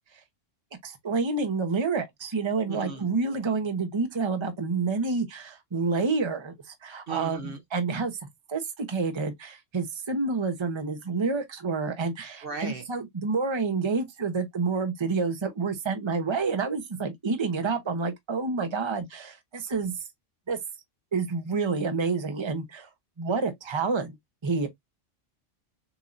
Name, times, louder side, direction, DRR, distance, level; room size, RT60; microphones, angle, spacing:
voice 1, 0.8-8.2 8.5-20.0 20.5-20.6 21.1-22.9 23.2-24.1 24.4-24.7, right 4 dB, 25° right, 0.9 m, -28 dB
voice 2, 2.7-3.1 7.1-7.6 12.4-12.8, right 5 dB, 50° right, 1.0 m, -36 dB
7.0 x 2.8 x 2.5 m
omnidirectional pair, 1.3 m